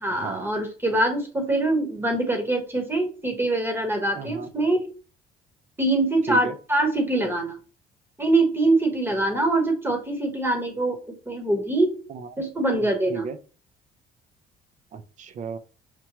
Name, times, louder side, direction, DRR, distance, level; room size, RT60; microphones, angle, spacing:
voice 1, 0.0-4.9 5.8-7.6 8.2-11.0 11.2-11.9 12.4-13.2, right 2 dB, 15° right, 4 dB, 1.1 m, -24 dB
voice 2, 4.2-4.5 6.3-6.5 12.1-12.2 13.1-13.4 14.9-15.6, right 5 dB, 45° right, 11 dB, 0.6 m, -32 dB
5.8 x 2.2 x 3.0 m, 0.36 s
cardioid pair, 110°, 17 cm